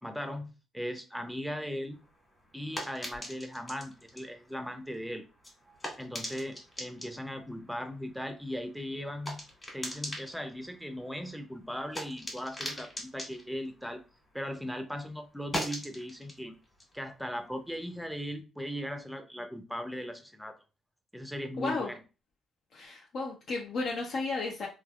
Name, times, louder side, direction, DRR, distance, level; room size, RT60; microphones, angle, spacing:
voice 1, 0.0-2.0 2.5-5.2 6.0-9.4 9.7-14.0 14.3-16.6 16.9-20.5 21.1-22.0, equal, ahead, 0.5 m, -38 dB
sound 1, 1.9-14.7 15.0-18.2, equal, 25° left, 1.5 m, -43 dB
voice 2, 21.6-21.9 22.7-24.7, left 3 dB, 65° left, 0.6 m, -33 dB
3.2 x 2.3 x 2.3 m
cardioid pair, 90°, 0 cm